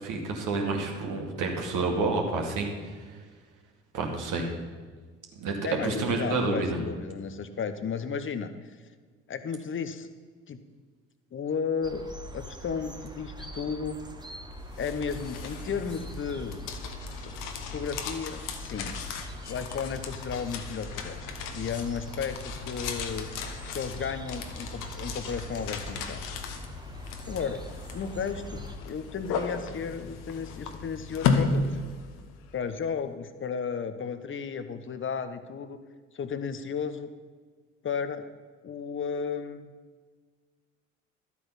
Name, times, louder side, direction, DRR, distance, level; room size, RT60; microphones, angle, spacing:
voice 1, 0.0-2.7 3.9-4.5 5.4-5.5 5.8-6.8, right 3 dB, 60° right, 1 dB, 2.4 m, -29 dB
voice 2, 5.6-8.8 9.3-10.1 10.5-10.6 11.3-12.0 12.3-14.0 14.8-16.6 17.7-18.9 19.5-21.2 21.5-23.3 23.7-26.2 27.2-27.6 27.9-31.7 32.5-35.8 36.1-37.1 37.8-38.2 38.6-39.6, left 6 dB, 35° left, 11 dB, 1.0 m, -34 dB
sound 1, 11.8-28.8, right 1 dB, 10° right, 1.4 m, -43 dB
sound 2, 14.5-32.5, left 5 dB, 60° left, 1.4 m, -35 dB
12.5 x 8.4 x 5.8 m, 1.5 s
hypercardioid pair, 60°, 36 cm